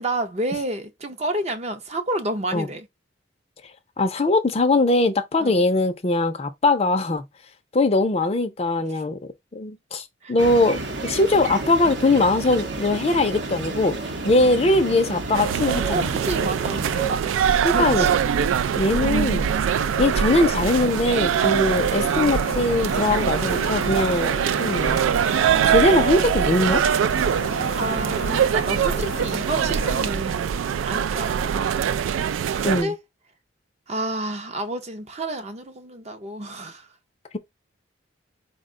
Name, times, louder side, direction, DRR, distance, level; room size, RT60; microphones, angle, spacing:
voice 1, 0.0-2.9 5.4-5.6 8.9-9.0 10.2-10.3 15.9-18.1 21.4-21.7 27.8-31.7 32.5-33.0 33.9-36.9, right 1 dB, 35° right, 0.5 m, -30 dB
voice 2, 4.0-7.2 7.7-9.2 9.5-14.0 14.2-16.1 17.6-18.1 18.8-19.5 20.0-25.0 25.6-26.8 32.6-32.9, left 2 dB, 30° left, 0.4 m, -21 dB
sound 1, 10.4-17.1, right 3 dB, 65° right, 0.8 m, -30 dB
crowd ext footsteps boots wet gritty sidewalk winter, 15.3-32.8, right 8 dB, 85° right, 0.3 m, -23 dB
sound 2, 17.8-30.1, left 3 dB, 75° left, 0.8 m, -35 dB
4.4 x 2.2 x 3.6 m
head